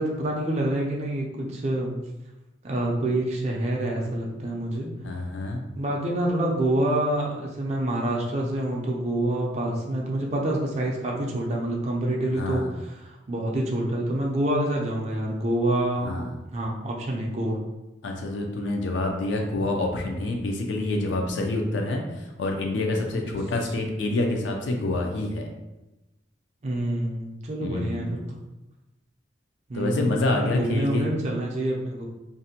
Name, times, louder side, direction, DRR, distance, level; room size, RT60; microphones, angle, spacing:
voice 1, 0.0-2.0 2.6-4.9 5.7-16.2 16.5-17.6 26.6-28.4 29.7-32.1, right 1 dB, 35° right, -1 dB, 0.4 m, -27 dB
voice 2, 5.0-5.6 12.3-12.7 16.0-16.3 18.0-25.5 27.6-28.1 29.7-31.1, left 2 dB, 70° left, 2 dB, 0.4 m, -27 dB
2.5 x 2.1 x 2.7 m, 1.0 s
head